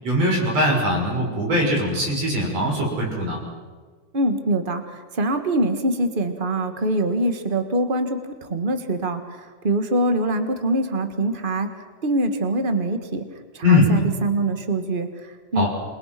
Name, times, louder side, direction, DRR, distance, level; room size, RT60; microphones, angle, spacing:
voice 1, 0.0-3.4 13.6-13.9 15.6-15.7, left 1 dB, 55° right, 0 dB, 6.9 m, -21 dB
voice 2, 4.1-11.7 12.0-13.2 13.5-15.7, right 1 dB, 25° right, 7 dB, 1.4 m, -24 dB
28.0 x 22.5 x 6.1 m, 1.5 s
omnidirectional pair, 3.5 m